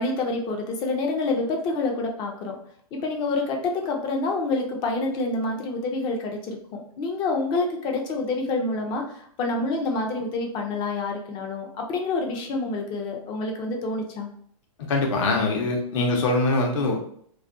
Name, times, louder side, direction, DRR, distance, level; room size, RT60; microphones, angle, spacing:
voice 1, 0.0-2.6 2.9-14.3, left 3 dB, 25° left, 2 dB, 0.4 m, -27 dB
voice 2, 14.9-17.0, left 2 dB, 55° left, 1 dB, 0.7 m, -23 dB
2.4 x 2.2 x 2.5 m, 0.64 s
hypercardioid pair, 140°, 19 cm